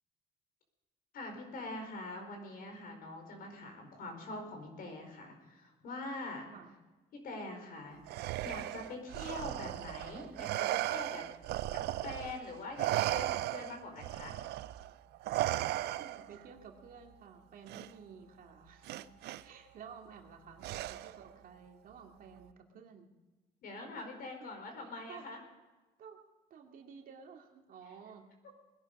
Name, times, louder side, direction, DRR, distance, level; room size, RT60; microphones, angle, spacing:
voice 1, 1.1-6.5 7.1-11.2 12.0-14.4 23.6-25.4, left 2 dB, 60° left, 4 dB, 4.8 m, -44 dB
Respiratory sounds, 8.1-12.4 12.8-16.4 17.7-17.9 18.9-19.4 20.6-21.3, right 15 dB, 75° right, 0.6 m, -36 dB
voice 2, 16.0-19.1 19.4-23.1 25.1-25.3 26.0-26.2 26.5-28.3, right 6 dB, 55° right, 3 dB, 2.3 m, -53 dB
21.0 x 11.0 x 5.4 m, 1.2 s
cardioid pair, 110°, 17 cm